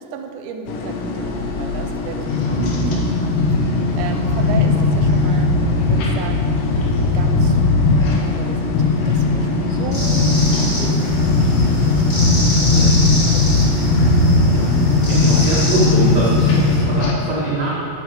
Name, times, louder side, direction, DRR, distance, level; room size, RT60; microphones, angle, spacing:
voice 1, 0.0-2.6 2.9-5.6 5.9-6.5 7.1-7.6 8.3-12.9 13.3-14.0 15.0-15.6 16.4-16.9, right 5 dB, 85° right, 5 dB, 2.1 m, -34 dB
sound 1, 0.7-17.1, left 3 dB, 90° left, 1.2 m, -27 dB
sound 2, 2.3-17.1, left 3 dB, 65° left, 1.9 m, -17 dB
voice 2, 2.5-3.0 12.7-12.9 14.5-14.7 15.1-17.7, right 2 dB, 55° right, -7 dB, 1.2 m, -23 dB
sound 3, 9.9-16.8, equal, 40° left, 2.4 m, -27 dB
8.0 x 7.5 x 4.8 m, 2.9 s
omnidirectional pair, 3.6 m